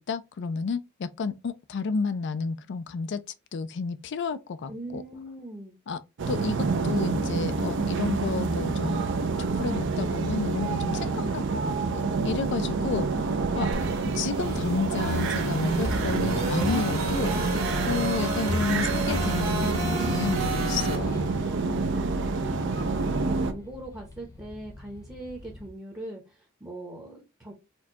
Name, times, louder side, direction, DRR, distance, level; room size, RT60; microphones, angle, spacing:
voice 1, 0.0-3.2 3.5-5.0 5.9-6.0 6.3-9.1 9.4-13.1 13.5-13.7 14.2-17.6 17.8-21.2, left 5 dB, 60° left, 0.4 m, -31 dB
voice 2, 4.7-5.7 19.8-20.9 21.4-27.5, right 1 dB, 15° right, 0.8 m, -41 dB
sound 1, 6.2-23.5, right 3 dB, 60° right, 0.5 m, -28 dB
sound 2, 13.7-21.0, right 2 dB, 90° right, 1.7 m, -31 dB
sound 3, 16.4-25.7, left 1 dB, 15° left, 0.8 m, -47 dB
4.3 x 2.3 x 2.7 m
head